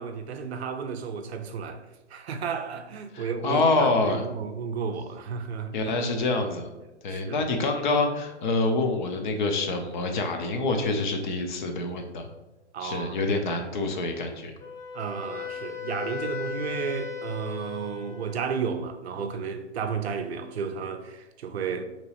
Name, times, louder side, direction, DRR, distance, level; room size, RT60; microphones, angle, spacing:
voice 1, 0.0-1.8 2.1-5.9 7.1-7.4 12.7-13.4 14.9-21.8, right 6 dB, 65° right, 0.5 m, -33 dB
voice 2, 3.1-4.2 5.7-6.7 7.0-12.3 12.8-14.5, left 3 dB, 45° left, 0.5 m, -26 dB
Wind instrument woodwind instrument, 14.6-18.7, left 6 dB, 60° left, 1.0 m, -37 dB
3.0 x 2.9 x 2.9 m
hypercardioid pair, 125°, 35 cm